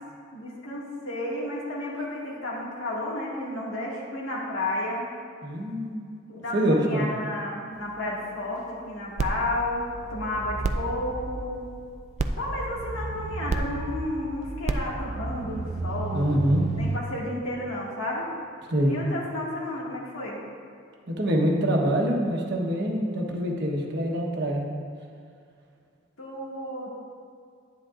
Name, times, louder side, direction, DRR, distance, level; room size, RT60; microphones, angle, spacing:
voice 1, 0.3-5.1 6.3-11.6 12.4-16.3 16.8-18.3 18.9-20.4 26.2-26.9, left 1 dB, 85° left, -4 dB, 1.9 m, -32 dB
voice 2, 5.4-6.1 6.5-7.1 16.1-16.6 18.7-19.0 21.1-24.6, equal, 55° right, 0 dB, 1.1 m, -25 dB
sound 1, 9.2-17.0, right 3 dB, 35° right, 0.3 m, -31 dB
10.0 x 9.7 x 2.5 m, 2.3 s
head